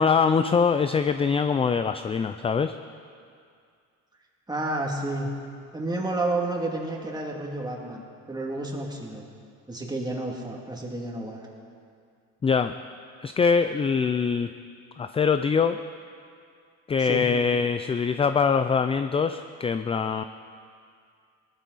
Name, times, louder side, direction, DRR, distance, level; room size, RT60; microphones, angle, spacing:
voice 1, 0.0-2.7 12.4-12.7 13.2-14.5 15.0-15.8 16.9-20.2, left 5 dB, 15° left, 10 dB, 0.3 m, -23 dB
voice 2, 4.5-5.3 5.7-9.3 9.7-11.4 17.0-17.3, right 2 dB, 10° right, -1 dB, 2.4 m, -30 dB
19.0 x 13.0 x 4.1 m, 2.3 s
cardioid pair, 95°, 35 cm